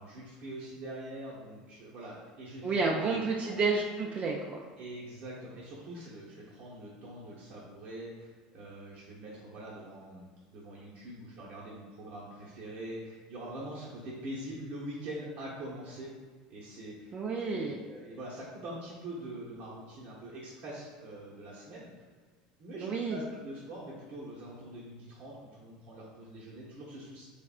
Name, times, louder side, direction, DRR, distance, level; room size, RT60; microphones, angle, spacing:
voice 1, 0.0-3.1 3.5-3.6 4.8-16.1 16.5-17.2 17.5-21.9 22.6-27.2, right 1 dB, 60° right, -6 dB, 0.8 m, -44 dB
voice 2, 2.6-4.6 17.1-17.8 22.8-23.2, right 4 dB, 35° right, -2 dB, 0.4 m, -30 dB
3.5 x 3.3 x 2.4 m, 1.5 s
supercardioid pair, 105°, 3 cm